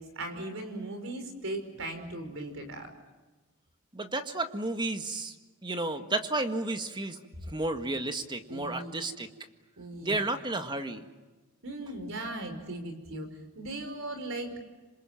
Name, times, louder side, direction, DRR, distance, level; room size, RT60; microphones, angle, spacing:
voice 1, 0.0-2.9 8.5-8.9 9.8-10.2 11.6-14.6, right 1 dB, 65° right, 7 dB, 5.3 m, -38 dB
voice 2, 3.9-5.3 5.6-7.2 7.5-9.3 10.0-11.1, right 2 dB, 20° right, 7 dB, 1.8 m, -32 dB
27.0 x 27.0 x 7.5 m, 1.2 s
head